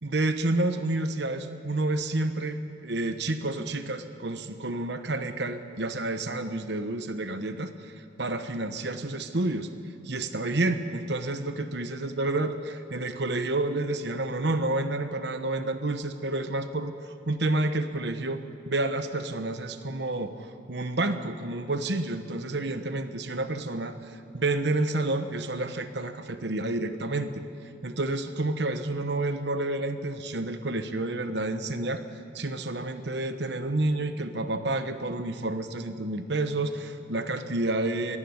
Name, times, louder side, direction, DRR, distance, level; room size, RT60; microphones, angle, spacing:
voice 1, 0.0-2.6 2.8-7.9 8.2-9.7 10.0-18.4 18.7-27.4 27.8-32.0 32.3-38.2, right 2 dB, 65° right, 9 dB, 1.1 m, -29 dB
25.0 x 11.0 x 9.6 m, 2.3 s
head